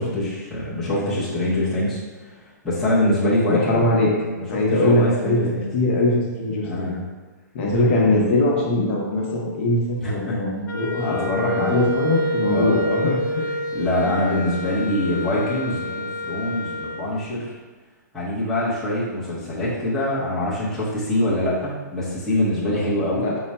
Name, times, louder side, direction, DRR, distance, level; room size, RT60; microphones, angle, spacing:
voice 1, 0.0-2.0 2.6-3.8 4.4-5.7 6.6-7.0 10.0-10.4 11.0-11.8 12.5-12.8 13.7-17.5 18.1-23.2, left 1 dB, ahead, -12 dB, 0.8 m, -24 dB
voice 2, 3.5-4.1 4.5-6.1 6.4-7.0 7.5-13.4 23.2-23.4, left 2 dB, 40° left, -3 dB, 0.9 m, -22 dB
Wind instrument woodwind instrument, 10.7-17.1, equal, 80° left, 0.4 m, -28 dB
4.7 x 2.2 x 4.1 m, 1.3 s
hypercardioid pair, 165°, 10 cm